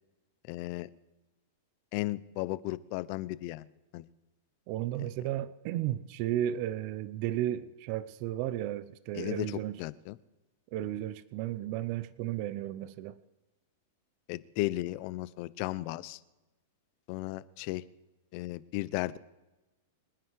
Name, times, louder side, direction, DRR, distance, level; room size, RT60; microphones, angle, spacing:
voice 1, 0.5-0.9 1.9-3.7 3.9-4.1 9.2-10.2 14.3-16.2 17.1-17.8 18.3-19.2, left 18 dB, 45° left, 0.7 m, -35 dB
voice 2, 4.7-9.8 10.7-13.2, right 12 dB, 45° right, 0.7 m, -34 dB
26.0 x 9.5 x 4.8 m
supercardioid pair, 150°, 0 cm